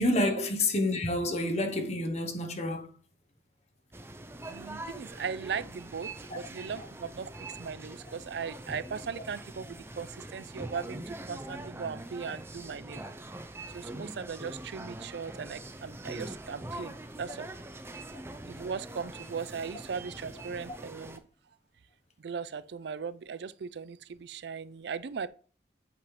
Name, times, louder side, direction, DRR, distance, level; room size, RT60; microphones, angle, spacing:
voice 1, 0.0-2.9 6.3-6.4, left 1 dB, 35° left, 1.0 m, -28 dB
sound 1, 3.9-21.2, right 1 dB, 15° right, 0.5 m, -43 dB
voice 2, 4.5-7.3 7.6-13.0 13.7-17.5 18.5-21.2 22.2-25.3, right 6 dB, 70° right, 0.4 m, -38 dB
8.3 x 5.4 x 3.2 m
head